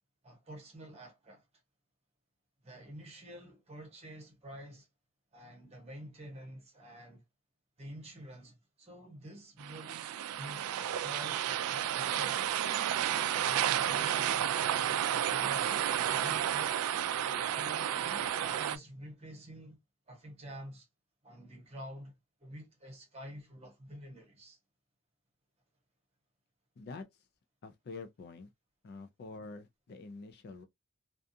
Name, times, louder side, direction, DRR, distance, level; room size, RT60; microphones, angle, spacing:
voice 1, 0.2-1.4 2.6-4.9 5.3-7.2 7.8-12.7 13.3-15.7 16.1-16.8 17.5-19.8 20.1-20.9 21.2-22.1 22.4-24.6, equal, 30° right, 1.0 m, -49 dB
sound 1, 9.6-18.8, right 10 dB, 80° right, 0.3 m, -31 dB
voice 2, 27.6-28.5 28.8-30.6, left 3 dB, 45° left, 0.3 m, -46 dB
2.4 x 2.3 x 2.6 m
head